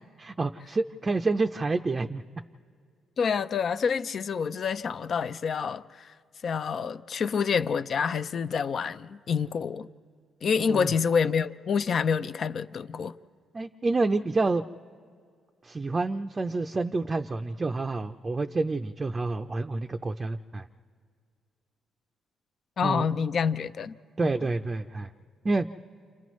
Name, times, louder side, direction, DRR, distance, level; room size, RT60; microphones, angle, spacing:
voice 1, 0.2-2.2 10.7-10.9 13.5-14.6 15.6-20.7 22.8-23.1 24.2-25.1 25.4-25.7, right 3 dB, 30° right, 0.5 m, -28 dB
voice 2, 3.2-6.1 6.4-9.9 10.4-13.1 22.8-24.0 24.2-24.3, left 6 dB, 55° left, 0.5 m, -27 dB
30.0 x 28.0 x 3.1 m
cardioid pair, 90°, 0 cm